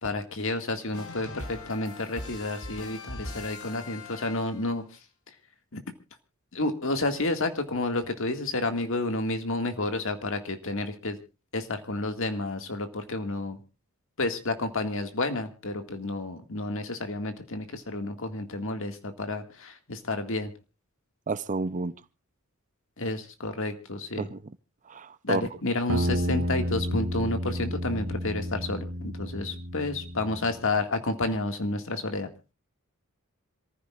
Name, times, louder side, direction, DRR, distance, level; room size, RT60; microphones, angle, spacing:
voice 1, 0.0-4.8 5.7-5.8 6.5-11.2 11.5-13.6 14.2-20.5 23.0-24.3 25.2-32.3, left 2 dB, 65° left, 2.0 m, -30 dB
sound 1, 0.9-4.8, left 2 dB, 85° left, 5.7 m, -41 dB
voice 2, 21.3-21.9 24.2-24.4 24.9-25.4, right 3 dB, 35° right, 0.6 m, -30 dB
sound 2, 25.9-30.6, equal, 70° right, 2.1 m, -31 dB
27.0 x 15.0 x 2.5 m
head